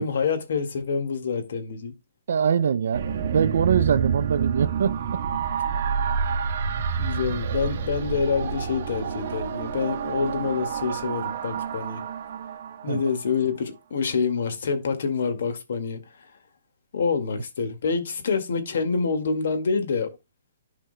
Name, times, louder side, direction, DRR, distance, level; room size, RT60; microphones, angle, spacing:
voice 1, 0.0-1.9 7.0-12.0 12.8-16.3 16.9-20.1, left 5 dB, 65° left, 2.0 m, -27 dB
voice 2, 2.3-3.1 3.3-5.0 12.9-13.0, right 7 dB, 70° right, 0.5 m, -22 dB
sound 1, 2.9-13.3, right 7 dB, 50° right, 1.2 m, -28 dB
13.0 x 4.9 x 2.2 m
hypercardioid pair, 150°, 0 cm